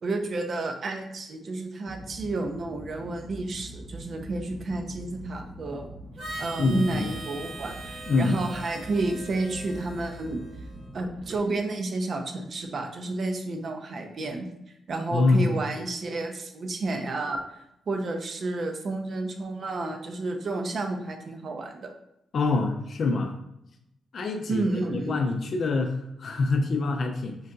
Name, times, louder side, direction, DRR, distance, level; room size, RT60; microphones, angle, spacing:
voice 1, 0.0-5.9 6.4-10.4 10.9-14.5 14.9-17.4 17.9-21.9 24.5-25.2, right 2 dB, 60° right, 4 dB, 0.5 m, -31 dB
sound 1, 1.9-11.4, right 1 dB, ahead, 0.5 m, -43 dB
Harmonica, 6.2-10.9, right 2 dB, 85° right, 1.1 m, -41 dB
voice 2, 6.6-7.1 8.1-8.4 15.1-15.5 22.3-23.3 24.1-24.6 25.0-27.4, left 3 dB, 60° left, 4 dB, 0.4 m, -25 dB
3.7 x 2.6 x 2.2 m, 0.83 s
supercardioid pair, 50°, 0 cm